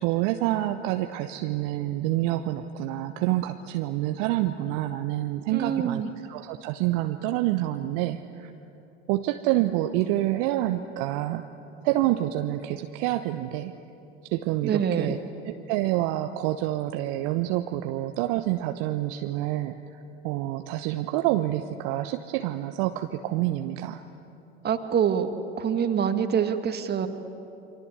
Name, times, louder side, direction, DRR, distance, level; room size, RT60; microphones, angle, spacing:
voice 1, 0.0-6.0 6.3-8.5 9.1-11.5 11.8-13.7 14.2-15.2 15.4-19.8 20.2-24.0, right 15 dB, 50° right, 8 dB, 1.1 m, -27 dB
voice 2, 5.5-6.1 14.6-15.2 24.6-27.1, right 8 dB, 30° right, 8 dB, 2.0 m, -25 dB
28.5 x 24.0 x 8.1 m, 3.0 s
figure-of-eight pair, 80°, 33 cm